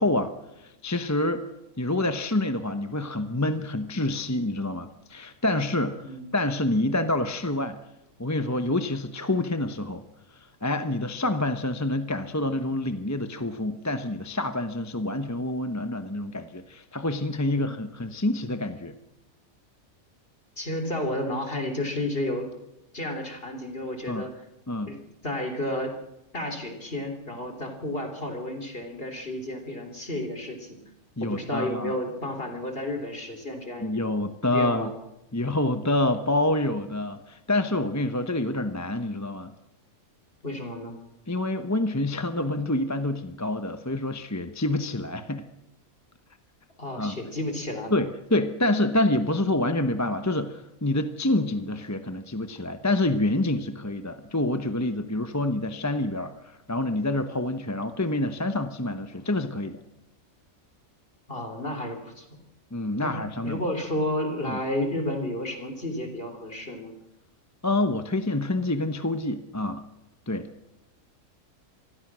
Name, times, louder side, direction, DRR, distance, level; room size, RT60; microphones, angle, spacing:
voice 1, 0.0-1.4 1.8-7.8 8.2-10.0 10.3-18.9 24.1-24.3 24.7-24.9 31.2-31.9 33.8-34.9 35.3-39.5 41.3-45.5 47.0-47.2 47.9-59.8 62.7-63.6 64.5-64.6 67.6-69.8 70.3-70.5, left 2 dB, 15° left, 9 dB, 0.9 m, -27 dB
voice 2, 6.0-6.4 17.5-17.8 20.6-22.5 22.9-24.4 24.9-25.0 25.2-25.9 26.3-30.8 31.2-34.1 34.5-34.9 40.4-40.9 46.8-47.9 51.3-51.5 61.3-62.3 63.0-63.1 63.4-66.9, left 1 dB, 40° left, 5 dB, 3.8 m, -32 dB
26.5 x 20.0 x 6.3 m, 0.91 s
omnidirectional pair, 1.5 m